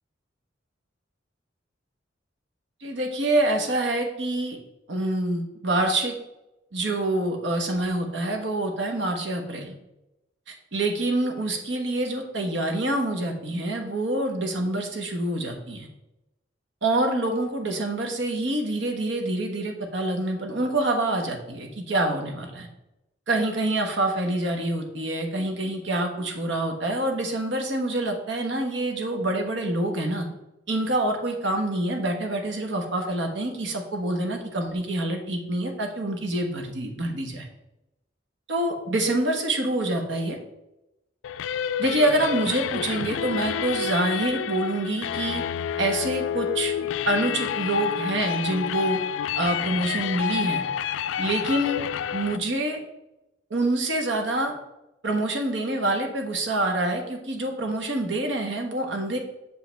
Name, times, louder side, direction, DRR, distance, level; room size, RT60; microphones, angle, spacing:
voice 1, 2.8-4.6 4.9-6.1 6.7-9.7 10.5-15.9 16.8-22.7 23.3-30.3 30.7-37.5 38.5-40.4 41.8-45.4 45.8-46.7 47.1-49.0 49.4-50.6 51.2-51.8 52.1-52.8 53.5-54.5 55.0-59.2, right 1 dB, 65° right, 3 dB, 1.1 m, -26 dB
sound 1, 41.2-52.4, left 9 dB, 80° left, 0.3 m, -29 dB
6.8 x 5.1 x 3.4 m, 0.92 s
head